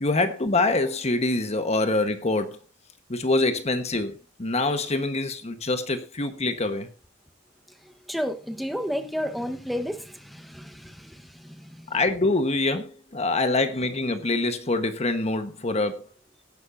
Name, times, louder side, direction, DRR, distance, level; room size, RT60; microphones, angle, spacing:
voice 1, 0.0-2.6 3.1-6.9 11.9-16.1, left 2 dB, 35° left, 1.2 m, -25 dB
voice 2, 7.7-12.0, equal, ahead, 1.1 m, -32 dB
17.0 x 10.5 x 2.6 m
head